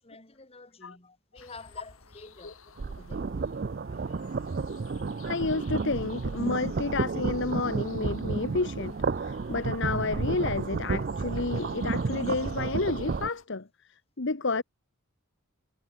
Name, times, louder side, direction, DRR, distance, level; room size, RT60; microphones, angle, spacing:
voice 1, 0.0-3.4, left 3 dB, 30° left, 2.9 m, -49 dB
sound 1, 1.4-13.5, left 5 dB, 70° left, 3.6 m, -54 dB
sound 2, 2.8-13.3, right 4 dB, 45° right, 0.5 m, -31 dB
voice 2, 5.2-13.7 14.2-14.6, left 3 dB, 55° left, 1.1 m, -30 dB
head